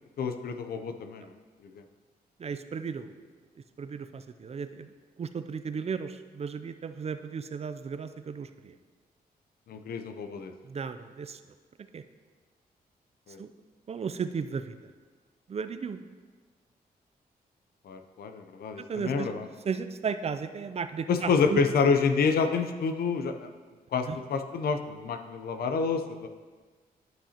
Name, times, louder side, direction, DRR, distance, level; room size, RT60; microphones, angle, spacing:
voice 1, 0.2-1.2 9.7-10.5 13.3-13.4 17.9-19.5 21.1-23.5 23.9-26.3, left 5 dB, 75° left, 7 dB, 0.6 m, -28 dB
voice 2, 2.4-3.2 3.8-4.9 5.2-8.8 10.6-11.4 11.9-12.0 13.4-13.5 13.9-14.9 15.5-16.0 18.8-19.3 19.7-21.6 24.1-24.2, right 6 dB, 40° right, 11 dB, 0.4 m, -35 dB
10.5 x 5.7 x 2.9 m, 1.4 s
cardioid pair, 75°, 16 cm